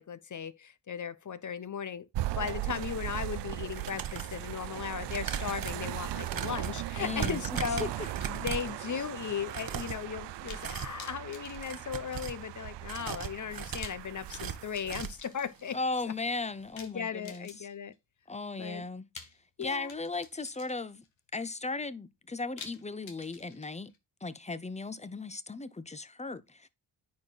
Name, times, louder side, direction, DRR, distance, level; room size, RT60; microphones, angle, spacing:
voice 1, 0.0-15.8 16.1-16.2 16.8-17.9 18.6-18.8 19.6-19.9, left 7 dB, 40° left, 0.9 m, -37 dB
sound 1, 2.1-14.9, right 15 dB, 65° right, 0.5 m, -38 dB
sound 2, 3.7-4.4 5.0-8.8 9.4-10.1 10.5-11.0 11.5-12.4 12.8-15.3 15.7-15.8 16.1-16.2, right 7 dB, 50° right, 1.1 m, -38 dB
voice 2, 7.0-7.9 15.7-17.7 18.3-19.1 19.6-21.0 21.3-23.9 24.2-26.7, left 3 dB, 15° left, 0.8 m, -37 dB
sound 3, 7.6-9.1 9.4-9.5 10.5-10.7 11.0-12.5 13.6-15.7 16.8-17.9 19.2-21.1 22.6-24.0, left 6 dB, 80° left, 1.7 m, -50 dB
9.6 x 4.5 x 4.1 m
cardioid pair, 60°, 46 cm